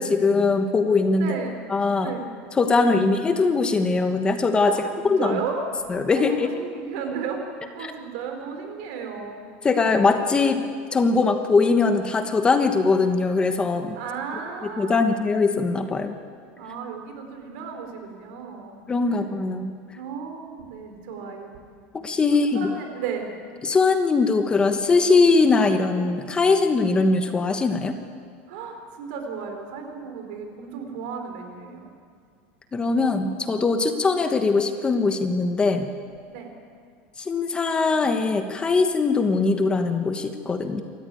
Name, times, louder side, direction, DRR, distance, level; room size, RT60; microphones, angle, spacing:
voice 1, 0.0-1.3 1.7-2.1 2.6-4.7 5.1-5.4 5.9-6.5 9.6-10.6 10.9-14.0 14.8-16.2 18.9-19.7 21.9-22.6 23.6-28.0 32.7-35.9 37.2-40.8, left 4 dB, 15° left, 7 dB, 1.2 m, -21 dB
voice 2, 1.2-1.6 2.0-2.2 2.7-3.1 4.6-5.6 6.1-7.5 7.7-9.4 14.0-15.2 16.5-18.8 19.1-19.3 19.9-21.5 22.5-23.3 28.5-31.9 36.3-36.6, right 6 dB, 70° right, 4 dB, 4.6 m, -34 dB
27.5 x 14.0 x 9.3 m, 2.2 s
supercardioid pair, 155°, 6 cm